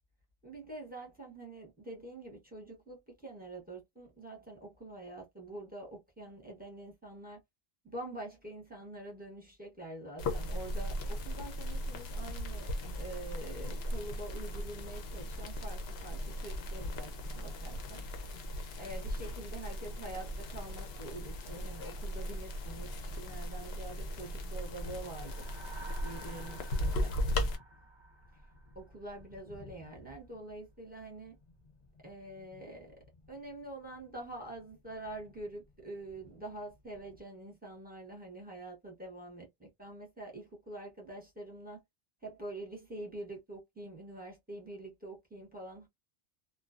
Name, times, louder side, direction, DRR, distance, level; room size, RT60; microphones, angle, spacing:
voice 1, 0.4-7.4 7.8-18.0 18.3-18.5 18.8-25.5 26.0-27.2 28.7-31.4 32.0-41.8 42.2-45.9, right 2 dB, 10° right, 0.7 m, -46 dB
sound 1, 10.2-27.6, equal, 65° left, 0.8 m, -37 dB
sound 2, 20.3-37.2, left 2 dB, 35° left, 0.7 m, -59 dB
sound 3, 24.7-29.3, right 3 dB, 40° right, 0.4 m, -53 dB
2.4 x 2.3 x 2.4 m
omnidirectional pair, 1.2 m